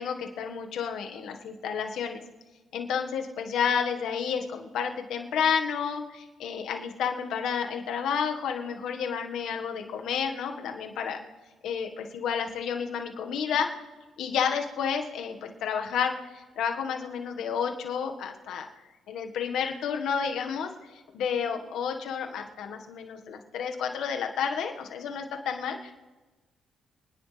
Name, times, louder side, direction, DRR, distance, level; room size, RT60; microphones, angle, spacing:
voice 1, 0.0-2.2 2.7-11.2 11.6-13.7 14.2-18.7 19.1-25.9, left 7 dB, 75° left, 4 dB, 1.6 m, -31 dB
27.5 x 10.0 x 3.4 m, 1.2 s
supercardioid pair, 70°, 0 cm